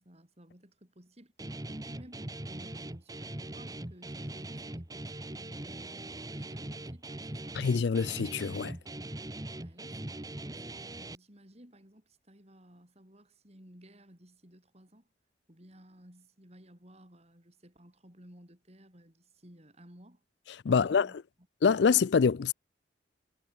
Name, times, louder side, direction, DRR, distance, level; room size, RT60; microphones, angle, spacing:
voice 1, 0.0-7.6 9.6-15.1 15.5-20.2 20.7-21.1, equal, 35° right, 6.8 m, -56 dB
Guitar, 1.4-11.2, right 1 dB, 20° right, 1.3 m, -41 dB
voice 2, 7.5-8.8 20.6-21.1 21.6-22.5, left 5 dB, 65° left, 0.4 m, -25 dB
head